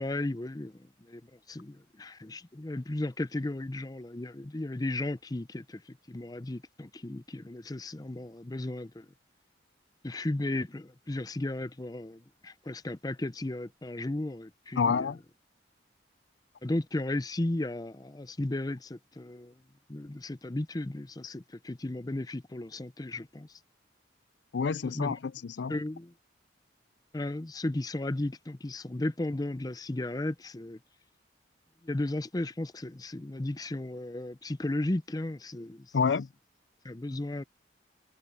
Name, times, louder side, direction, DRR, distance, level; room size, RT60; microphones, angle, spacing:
voice 1, 0.0-9.1 10.0-15.1 16.6-19.6 19.9-23.6 24.8-25.1 25.7-26.1 27.1-30.8 31.8-35.9 36.8-37.4, left 1 dB, 20° left, 0.5 m, -35 dB
voice 2, 14.8-15.2 24.5-25.8 35.9-36.3, left 5 dB, 75° left, 0.5 m, -28 dB
head